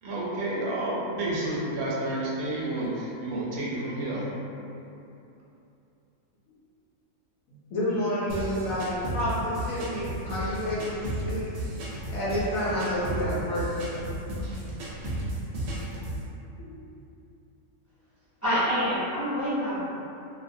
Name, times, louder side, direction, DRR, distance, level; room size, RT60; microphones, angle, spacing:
voice 1, 0.0-4.3, right 1 dB, 90° right, -6 dB, 1.1 m, -30 dB
voice 2, 7.7-11.4 12.1-13.7 16.6-16.8, equal, 70° left, -9 dB, 0.9 m, -29 dB
sound 1, 8.3-16.3, right 1 dB, 70° right, 0.9 m, -34 dB
voice 3, 18.4-19.8, equal, 20° left, -14 dB, 0.5 m, -26 dB
2.5 x 2.1 x 2.6 m, 2.8 s
omnidirectional pair, 1.5 m